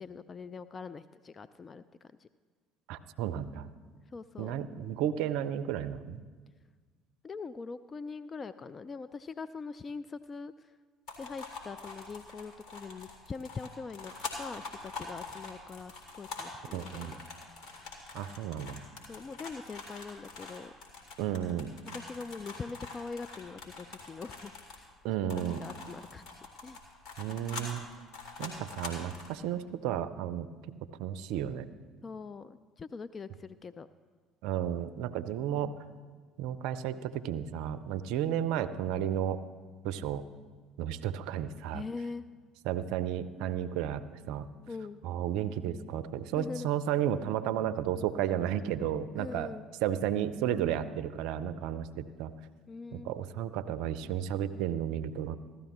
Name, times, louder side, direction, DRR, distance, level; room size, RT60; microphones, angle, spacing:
voice 1, 0.0-2.3 4.1-4.6 7.2-10.7 11.2-14.1 14.4-17.2 19.1-20.7 21.9-24.9 25.5-26.8 28.4-28.6 32.0-33.9 41.7-42.3 44.7-45.0 46.4-46.7 49.1-49.7 52.7-53.1, left 4 dB, 30° left, 13 dB, 0.3 m, -43 dB
voice 2, 2.9-3.7 4.4-6.2 16.7-17.1 18.1-18.8 21.2-21.7 25.0-25.6 27.2-27.8 28.4-30.5 31.0-31.7 34.4-35.7 36.4-39.4 39.8-40.2 40.8-41.8 42.6-44.0 44.3-44.5 45.0-49.5 49.8-52.3 52.9-55.4, right 10 dB, 65° right, 13 dB, 0.5 m, -33 dB
sound 1, 11.1-24.9 25.3-29.4, left 3 dB, 60° left, 2.5 m, -44 dB
15.5 x 12.5 x 3.0 m, 1.5 s
hypercardioid pair, 60°, 0 cm